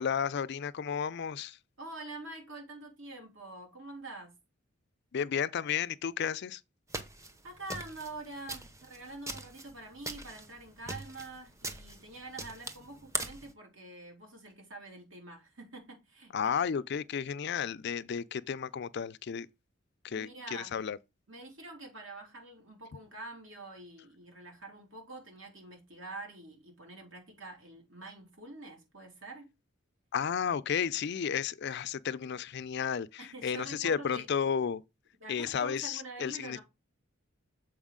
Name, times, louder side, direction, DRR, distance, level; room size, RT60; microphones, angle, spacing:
voice 1, 0.0-1.6 5.1-6.6 16.3-19.5 20.0-21.0 30.1-34.8 35.3-36.6, left 7 dB, 55° left, 0.4 m, -33 dB
voice 2, 1.8-4.3 7.4-16.3 20.1-20.9 21.3-29.5 33.2-34.3 35.2-36.6, right 2 dB, 65° right, 3.0 m, -46 dB
sound 1, 6.9-13.5, right 2 dB, 15° right, 0.8 m, -42 dB
7.2 x 4.7 x 3.7 m
head